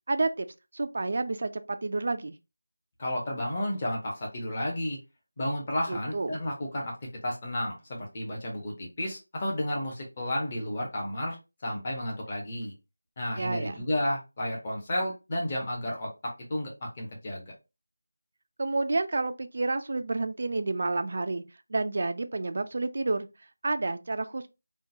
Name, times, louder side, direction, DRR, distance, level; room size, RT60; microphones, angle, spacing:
voice 1, 0.1-0.5 0.7-2.3 5.9-6.4 13.4-13.8 18.6-21.4 21.7-23.3 23.6-24.5, right 3 dB, 40° right, 0.4 m, -29 dB
voice 2, 3.0-5.0 5.4-6.9 7.2-11.4 11.6-12.7 13.2-17.5, left 1 dB, 25° left, 1.0 m, -32 dB
3.7 x 2.3 x 2.7 m
figure-of-eight pair, 175°, 0 cm